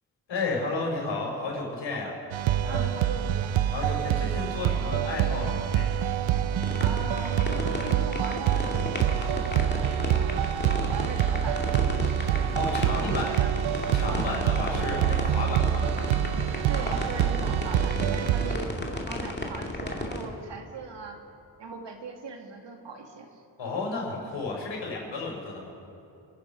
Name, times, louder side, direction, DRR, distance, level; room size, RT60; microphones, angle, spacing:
voice 1, 0.3-2.1 2.6-2.9 3.7-5.9 12.6-13.3 13.9-15.9 23.6-25.7, left 3 dB, 70° left, -1 dB, 5.0 m, -32 dB
sound 1, 2.3-18.6, right 10 dB, 80° right, 0.7 m, -26 dB
voice 2, 2.6-3.6 6.8-11.9 13.0-13.6 14.1-14.3 16.7-21.2 21.6-23.4, right 4 dB, 65° right, 3 dB, 2.1 m, -40 dB
sound 2, 6.6-20.2, left 2 dB, 20° left, 2.3 m, -33 dB
26.5 x 9.9 x 5.2 m, 2.7 s
cardioid pair, 70°, 46 cm